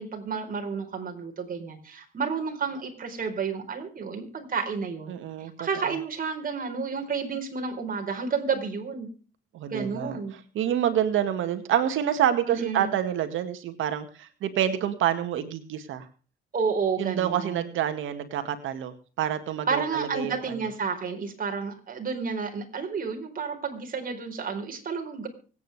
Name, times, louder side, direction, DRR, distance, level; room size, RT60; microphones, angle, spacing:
voice 1, 0.0-5.1 5.4-9.1 9.7-10.3 12.4-12.9 16.5-17.6 19.7-25.3, right 5 dB, 45° right, 3 dB, 4.5 m, -31 dB
voice 2, 5.1-5.7 9.5-10.2 10.5-16.0 17.0-20.4, right 10 dB, 80° right, 9 dB, 2.1 m, -27 dB
24.5 x 9.4 x 3.4 m, 0.38 s
cardioid pair, 90°, 20 cm